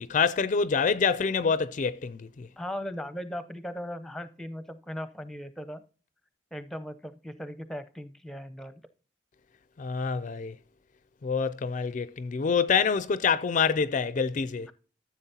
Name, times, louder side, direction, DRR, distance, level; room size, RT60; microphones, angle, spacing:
voice 1, 0.0-2.5 9.8-10.5 11.2-14.7, left 5 dB, 45° left, 0.4 m, -26 dB
voice 2, 2.6-5.8 6.5-8.8, equal, 5° left, 0.7 m, -38 dB
13.5 x 7.4 x 2.8 m
head